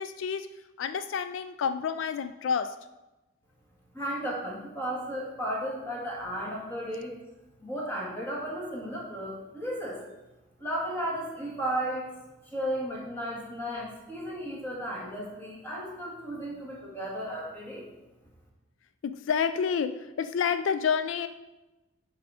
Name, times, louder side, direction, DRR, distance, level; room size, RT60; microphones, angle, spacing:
voice 1, 0.0-2.8 19.0-21.3, left 6 dB, 80° left, 11 dB, 0.3 m, -29 dB
voice 2, 3.9-7.1 7.6-10.0 10.6-12.1 12.5-17.9, equal, 10° left, -4 dB, 1.9 m, -34 dB
8.1 x 4.9 x 4.9 m, 1.0 s
head